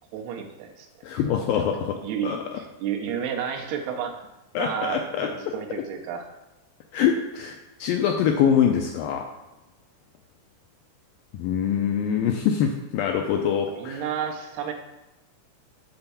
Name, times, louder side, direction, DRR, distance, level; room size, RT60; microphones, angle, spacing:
voice 1, 0.1-0.9 1.1-1.2 2.0-4.2 4.6-6.3 13.7-14.7, right 8 dB, 85° right, 3 dB, 2.8 m, -31 dB
voice 2, 1.0-2.4 4.5-5.9 6.9-9.3 11.3-14.0, left 8 dB, 85° left, 3 dB, 2.0 m, -24 dB
8.0 x 4.4 x 6.9 m, 1.1 s
omnidirectional pair, 4.6 m